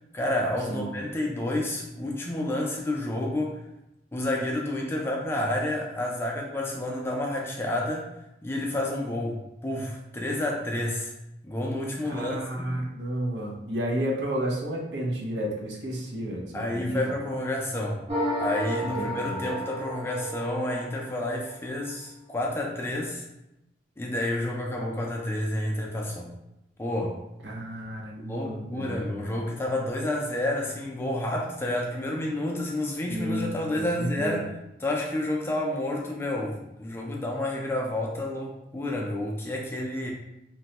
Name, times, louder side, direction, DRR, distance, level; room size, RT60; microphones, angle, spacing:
voice 1, 0.1-3.6 4.1-8.1 8.4-11.1 11.4-12.8 16.5-18.0 18.4-23.2 24.0-26.3 26.8-27.2 28.2-34.5 34.8-40.1, left 1 dB, 15° left, -1 dB, 0.3 m, -30 dB
voice 2, 12.0-17.0 19.0-19.4 27.4-29.2 33.1-34.4, equal, 80° right, -1 dB, 0.6 m, -32 dB
sound 1, 18.1-21.5, equal, 35° right, 0.8 m, -32 dB
2.9 x 2.2 x 2.8 m, 0.89 s
head